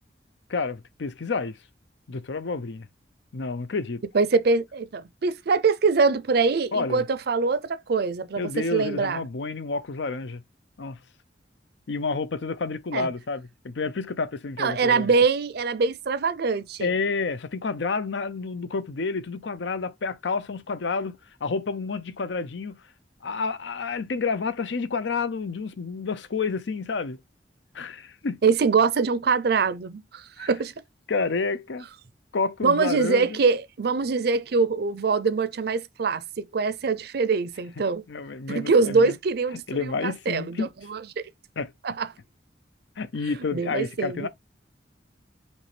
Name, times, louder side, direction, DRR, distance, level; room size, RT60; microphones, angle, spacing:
voice 1, 0.5-1.6 2.1-2.9 3.3-4.0 6.7-7.0 8.4-10.4 10.8-11.0 11.9-15.1 16.8-22.8 23.2-27.2 27.7-28.4 30.4-30.5 31.1-31.9 32.3-33.4 38.1-39.2 39.7-40.7 41.6-41.7 43.0-44.3, left 4 dB, 80° left, 0.6 m, -29 dB
voice 2, 4.1-9.2 12.9-13.1 14.6-16.9 28.4-30.7 32.6-38.0 38.5-41.3 41.8-42.1 43.5-44.3, right 4 dB, 60° right, 0.5 m, -24 dB
5.3 x 3.1 x 3.3 m
head